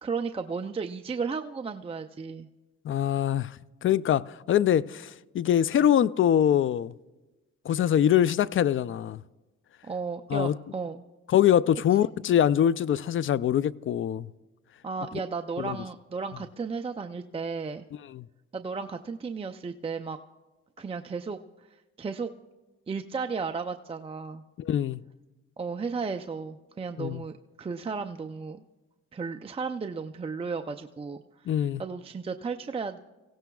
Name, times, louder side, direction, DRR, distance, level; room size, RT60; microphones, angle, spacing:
voice 1, 0.0-2.5 9.8-11.0 14.8-17.9 18.5-20.2 20.8-21.4 22.0-22.3 22.9-24.4 25.6-28.6 29.1-31.2 31.8-33.0, right 5 dB, 20° right, 0.5 m, -34 dB
voice 2, 2.8-3.5 3.8-6.9 7.7-9.2 10.3-10.5 11.3-14.3 15.6-15.8 18.1-18.2 24.6-25.0 27.0-27.2 31.5-31.8, left 10 dB, 45° left, 0.4 m, -23 dB
29.0 x 16.5 x 2.3 m
cardioid pair, 90°, 30 cm